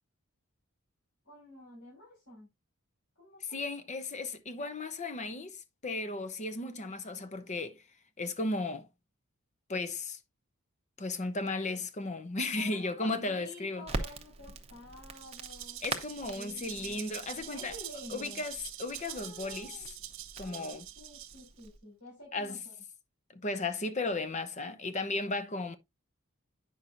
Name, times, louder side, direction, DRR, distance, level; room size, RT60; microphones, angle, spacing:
voice 1, 1.3-2.5 3.2-3.6 12.5-15.8 16.2-17.0 17.5-18.4 19.1-19.9 20.4-22.7, left 1 dB, 80° left, 5.3 m, -50 dB
voice 2, 3.4-7.8 8.2-8.9 9.7-10.2 11.0-13.9 15.8-17.8 18.1-19.8 20.4-20.8 22.3-22.6 23.3-25.8, left 2 dB, 35° left, 0.7 m, -35 dB
Crackle, 13.8-21.8, right 3 dB, 30° right, 0.8 m, -43 dB
Rattle (instrument), 15.1-21.7, right 12 dB, 60° right, 1.0 m, -45 dB
9.3 x 6.0 x 2.5 m
head